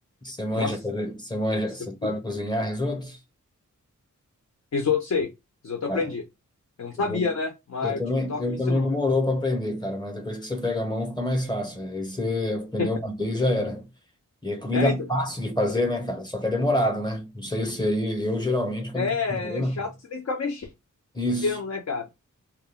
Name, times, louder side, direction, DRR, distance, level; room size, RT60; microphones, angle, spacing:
voice 1, 0.2-3.2 5.9-6.1 7.0-7.3 7.8-13.9 14.4-19.9 21.1-21.6, left 1 dB, 15° left, 0.8 m, -27 dB
voice 2, 4.7-5.3 5.6-6.2 6.8-8.0 8.3-8.9 12.8-12.9 14.7-15.0 18.9-20.7 21.4-22.1, left 5 dB, 55° left, 0.6 m, -28 dB
2.3 x 2.1 x 3.5 m
wide cardioid pair, 105°, 30 cm